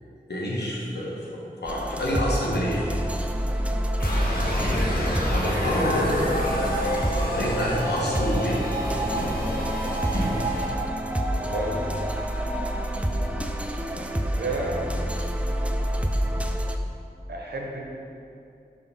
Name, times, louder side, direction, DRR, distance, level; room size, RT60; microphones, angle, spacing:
voice 1, 0.3-1.3 1.6-3.0 4.6-6.4 7.1-8.6 15.8-15.9, equal, 80° left, -4 dB, 1.2 m, -28 dB
sound 1, 1.7-16.8, equal, 5° right, 0.4 m, -28 dB
sound 2, 4.0-10.7, equal, 60° left, 1.3 m, -28 dB
sound 3, 7.5-14.2 14.5-14.6, right 2 dB, 60° right, 1.5 m, -35 dB
voice 2, 11.4-12.0 14.0-14.8 17.3-17.8, right 2 dB, 85° right, -1 dB, 0.9 m, -32 dB
5.7 x 3.8 x 5.5 m, 2.6 s
wide cardioid pair, 45°, 17 cm